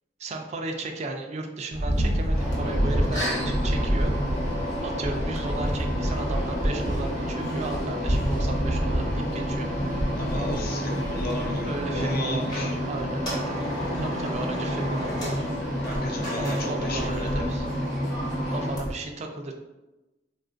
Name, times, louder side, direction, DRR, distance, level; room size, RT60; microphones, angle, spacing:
voice 1, 0.2-4.1 4.8-9.7 11.6-13.5 14.0-15.4 16.4-17.7 18.5-19.5, right 2 dB, 35° right, 4 dB, 0.3 m, -35 dB
sound 1, 1.7-18.9, equal, 20° left, 0.8 m, -30 dB
sound 2, 2.3-18.8, equal, 70° left, 1.1 m, -30 dB
sound 3, 6.2-18.3, equal, 90° left, 1.0 m, -45 dB
voice 2, 10.1-12.7 15.8-17.5, left 1 dB, 55° left, 0 dB, 0.6 m, -34 dB
3.5 x 2.4 x 2.5 m, 1.0 s
head